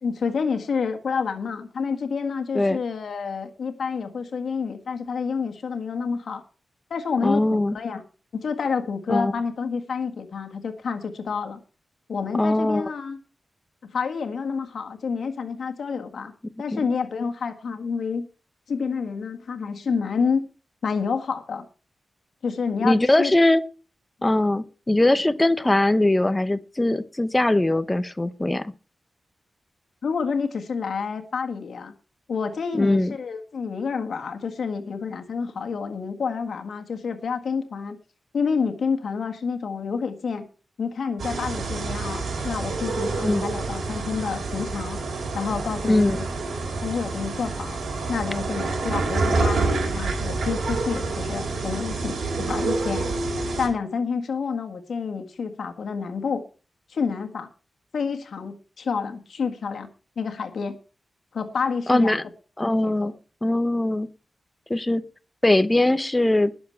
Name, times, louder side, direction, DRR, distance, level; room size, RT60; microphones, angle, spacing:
voice 1, 0.0-6.4 6.9-8.0 8.3-11.6 12.1-13.2 13.8-16.3 16.6-18.3 18.7-20.5 20.8-21.6 22.4-23.3 30.0-31.9 32.3-38.0 38.3-40.4 40.8-45.0 45.3-46.3 46.8-47.8 48.1-53.1 53.6-56.4 56.9-57.5 57.9-59.9 60.1-60.8 61.3-62.2 62.7-63.1, left 5 dB, 70° left, 5 dB, 1.7 m, -28 dB
voice 2, 7.2-7.7 9.1-9.3 12.4-12.8 16.7-16.9 22.8-23.6 24.2-28.7 32.7-33.1 43.2-43.4 45.9-46.2 61.9-62.2 62.6-63.1 63.4-64.1 64.7-65.0 65.4-66.5, left 1 dB, 15° left, 12 dB, 0.8 m, -21 dB
sound 1, 41.2-53.7, right 3 dB, 85° right, 4.6 m, -27 dB
20.0 x 7.1 x 4.6 m, 0.36 s
wide cardioid pair, 155°, 0 cm